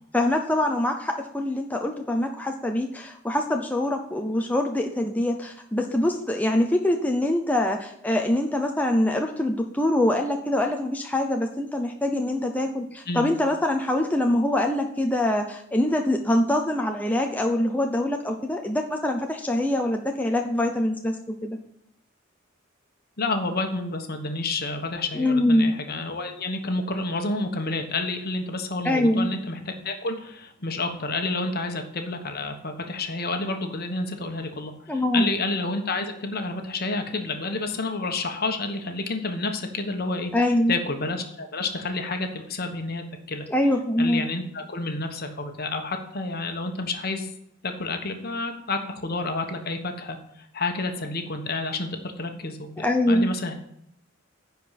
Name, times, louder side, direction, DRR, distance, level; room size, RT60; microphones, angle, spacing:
voice 1, 0.1-21.2 21.4-21.6 25.1-25.8 28.8-29.3 34.9-35.2 40.3-40.8 43.5-44.2 52.8-53.3, left 1 dB, 10° left, 2 dB, 0.6 m, -24 dB
voice 2, 23.2-29.6 29.8-43.4 44.0-47.3 47.6-51.9 52.2-53.6, left 2 dB, 50° left, 6 dB, 1.3 m, -30 dB
10.5 x 4.7 x 7.4 m, 0.73 s
head